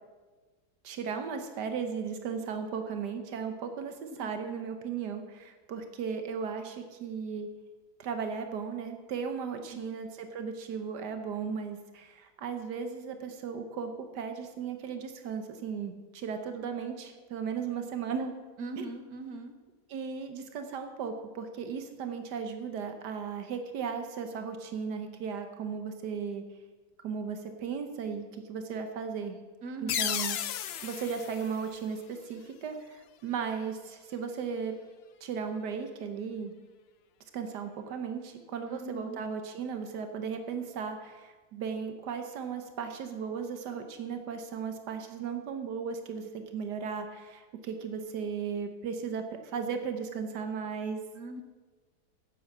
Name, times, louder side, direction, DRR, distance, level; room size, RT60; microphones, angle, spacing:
voice 1, 0.8-7.5 8.0-18.3 18.8-18.9 19.9-26.4 27.0-29.4 29.8-30.4 30.8-34.7 35.2-36.5 37.3-51.0, right 6 dB, 90° right, 6 dB, 1.6 m, -36 dB
voice 2, 9.7-10.1 18.6-19.5 29.6-30.1 38.7-39.2 51.1-51.4, right 3 dB, 70° right, 7 dB, 1.6 m, -41 dB
sound 1, 29.9-32.5, left 10 dB, 80° left, 0.5 m, -35 dB
10.5 x 8.3 x 7.3 m, 1.3 s
omnidirectional pair, 1.7 m